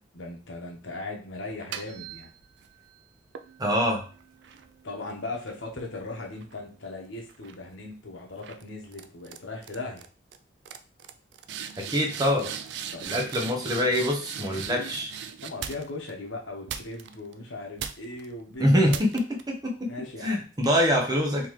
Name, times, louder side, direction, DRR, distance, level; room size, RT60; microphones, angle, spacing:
voice 1, 0.1-2.3 4.8-10.1 12.9-13.2 14.5-14.9 15.4-19.0 19.8-20.4, left 2 dB, 80° left, 0 dB, 1.0 m, -38 dB
sound 1, 1.5-2.7 3.4-6.9 7.3-7.7 8.4-8.6 8.9-9.4 9.6-10.1 10.3-10.4 10.7-16.1 16.7-17.3 17.8-18.3 18.9-19.4, right 8 dB, 60° right, 0.3 m, -39 dB
voice 2, 3.6-4.0 11.8-12.5 13.0-15.1 18.6-19.9 20.2-21.5, equal, 20° right, 1 dB, 0.7 m, -24 dB
3.8 x 2.9 x 3.1 m, 0.38 s
head